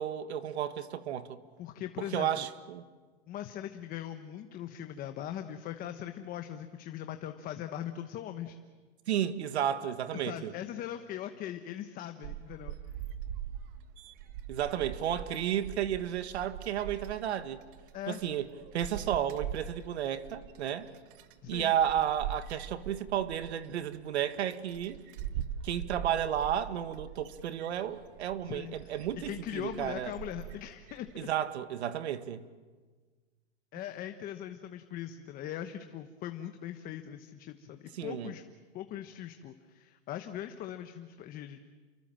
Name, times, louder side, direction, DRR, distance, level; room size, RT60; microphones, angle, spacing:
voice 1, 0.0-1.4 2.1-2.8 9.1-10.5 14.5-17.6 18.1-18.5 18.7-20.9 21.5-25.0 25.6-30.1 31.2-32.4 37.9-38.3, right 10 dB, 85° right, 1.8 m, -32 dB
voice 2, 1.6-2.5 3.3-8.6 10.1-12.7 17.9-18.2 21.4-21.7 28.4-31.1 33.7-38.4 38.7-41.7, left 11 dB, 25° left, 1.1 m, -40 dB
sound 1, 12.2-31.3, right 10 dB, 55° right, 1.6 m, -43 dB
29.0 x 24.0 x 7.6 m
supercardioid pair, 150°, 32 cm